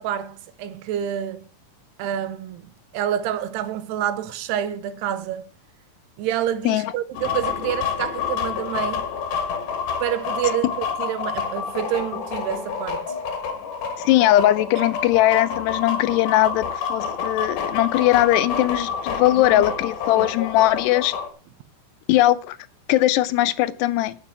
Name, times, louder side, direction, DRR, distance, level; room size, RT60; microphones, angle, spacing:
voice 1, 0.0-1.5 2.0-5.5 6.2-9.1 10.0-13.1 19.3-19.6 20.2-20.3, right 11 dB, 80° right, 2.8 m, -28 dB
sound 1, 7.1-21.3, left 6 dB, 60° left, 2.8 m, -28 dB
voice 2, 14.0-21.1 22.1-22.6 22.9-24.2, left 15 dB, 80° left, 2.7 m, -20 dB
9.1 x 7.6 x 7.5 m
omnidirectional pair, 4.9 m